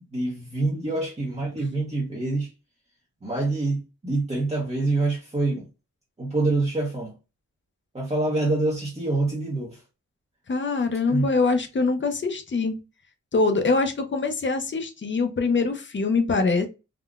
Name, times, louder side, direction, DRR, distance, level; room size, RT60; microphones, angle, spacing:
voice 1, 0.1-2.5 3.2-5.7 6.2-7.1 7.9-9.8 11.1-11.3, right 2 dB, 20° right, 0.8 m, -26 dB
voice 2, 10.5-12.8 13.3-16.7, left 3 dB, 40° left, 0.6 m, -23 dB
3.6 x 2.2 x 2.3 m
wide cardioid pair, 120°, 30 cm